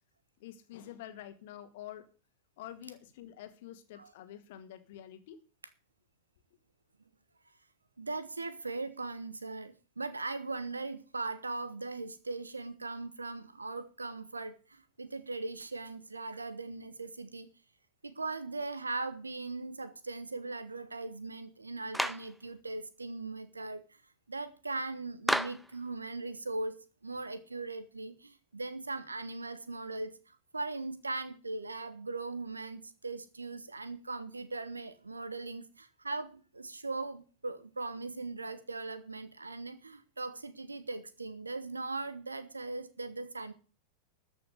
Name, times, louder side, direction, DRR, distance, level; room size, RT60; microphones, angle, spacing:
voice 1, 0.4-2.1 2.6-5.4, left 11 dB, 50° left, 1.9 m, -47 dB
voice 2, 8.0-17.5 18.0-24.0 24.3-26.7 27.0-43.5, right 3 dB, 80° right, 1.4 m, -39 dB
Clapping, 21.9-22.3 25.3-25.7, equal, ahead, 0.5 m, -31 dB
13.5 x 5.9 x 8.1 m
figure-of-eight pair, 90°, 0 cm